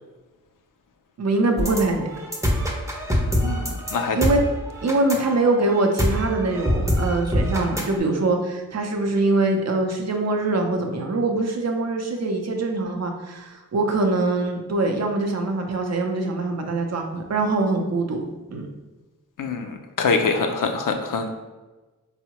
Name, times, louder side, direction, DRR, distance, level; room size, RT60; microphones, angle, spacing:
voice 1, 1.2-2.1 4.1-4.4 4.8-18.2 18.5-18.7, right 2 dB, 50° right, 3 dB, 0.6 m, -23 dB
sound 1, 1.6-8.0, equal, 10° right, 0.6 m, -25 dB
voice 2, 3.1-4.2 19.4-21.3, left 4 dB, 65° left, 4 dB, 0.5 m, -25 dB
3.6 x 2.0 x 2.9 m, 1.2 s
cardioid pair, 50°, 35 cm